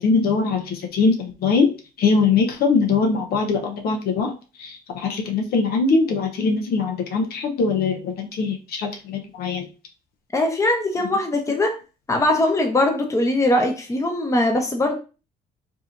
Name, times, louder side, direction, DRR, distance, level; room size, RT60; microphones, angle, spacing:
voice 1, 0.0-1.7 2.0-4.3 4.6-9.7, left 4 dB, 65° left, 3 dB, 0.8 m, -22 dB
voice 2, 10.3-11.8 12.1-15.0, left 1 dB, 20° left, 3 dB, 0.9 m, -21 dB
4.8 x 2.8 x 2.6 m, 0.33 s
cardioid pair, 110°, 17 cm